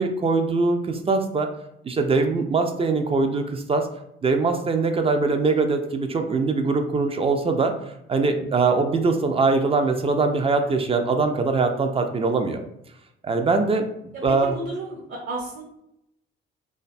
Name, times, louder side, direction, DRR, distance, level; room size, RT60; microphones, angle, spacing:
voice 1, 0.0-1.5 1.8-3.9 4.2-12.6 13.2-13.9 14.2-14.5, right 3 dB, 20° right, 6 dB, 0.3 m, -22 dB
voice 2, 14.3-15.6, right 2 dB, 55° right, -4 dB, 1.0 m, -32 dB
2.5 x 2.2 x 2.4 m, 0.81 s
hypercardioid pair, 45°, 29 cm